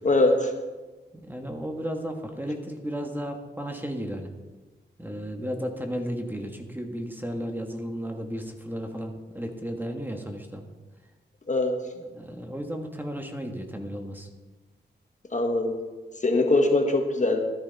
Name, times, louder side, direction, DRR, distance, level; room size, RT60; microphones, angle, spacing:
voice 1, 0.0-0.5 11.5-11.8 15.3-15.8 16.2-17.4, left 2 dB, 40° left, 3 dB, 1.5 m, -22 dB
voice 2, 1.1-4.3 5.0-10.6 12.0-14.3, equal, 10° right, 3 dB, 1.7 m, -34 dB
13.0 x 11.0 x 4.2 m, 1.2 s
cardioid pair, 65°, 19 cm